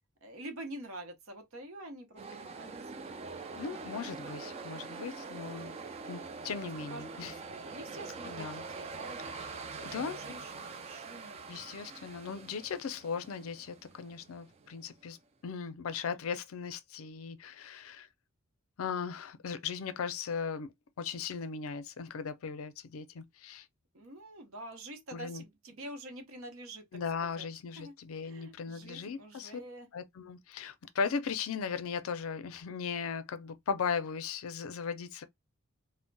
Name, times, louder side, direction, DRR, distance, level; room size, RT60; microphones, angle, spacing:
voice 1, 0.2-3.0 6.9-9.3 9.8-11.5 23.9-26.8 27.2-27.5 27.8-29.9, right 1 dB, 75° right, 0.7 m, -47 dB
sound 1, 2.2-15.1, right 4 dB, 30° right, 0.3 m, -44 dB
voice 2, 3.5-5.8 6.1-7.3 8.2-8.6 9.3-9.4 9.8-10.2 11.5-15.2 15.4-18.1 18.8-20.7 21.0-23.7 25.1-25.4 26.9-29.5 29.9-35.2, left 6 dB, 80° left, 0.4 m, -37 dB
2.2 x 2.1 x 3.8 m
head